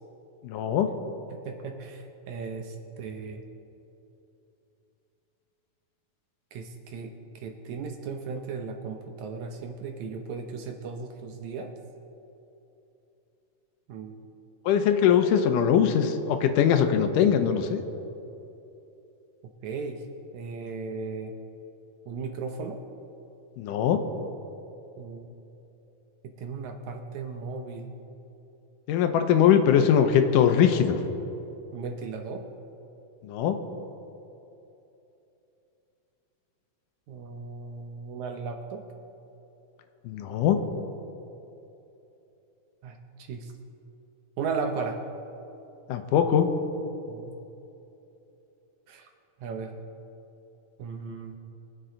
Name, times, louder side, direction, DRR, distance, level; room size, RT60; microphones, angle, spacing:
voice 1, 0.4-0.9 14.7-17.8 23.6-24.0 28.9-31.0 33.2-33.6 40.1-40.6 45.9-46.5, left 8 dB, 80° left, 7 dB, 2.3 m, -21 dB
voice 2, 1.5-3.4 6.5-11.7 13.9-14.2 19.6-20.0 20.3-21.3 22.1-22.8 25.0-25.3 26.4-27.9 31.7-32.5 37.1-38.9 42.8-43.0 43.3-43.5 44.4-45.0 47.1-47.3 48.9-49.1 49.4-49.7 50.8-51.4, right 5 dB, 75° right, 4 dB, 1.9 m, -36 dB
23.0 x 7.9 x 3.8 m, 2.9 s
omnidirectional pair, 3.8 m